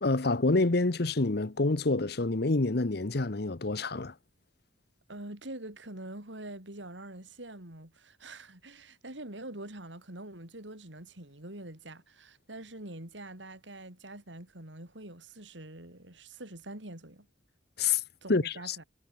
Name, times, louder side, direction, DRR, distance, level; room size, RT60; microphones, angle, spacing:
voice 1, 0.0-4.1 17.8-18.0 18.3-18.8, left 3 dB, 60° left, 1.0 m, -27 dB
voice 2, 5.1-17.3 18.2-18.8, right 1 dB, 80° right, 5.1 m, -45 dB
head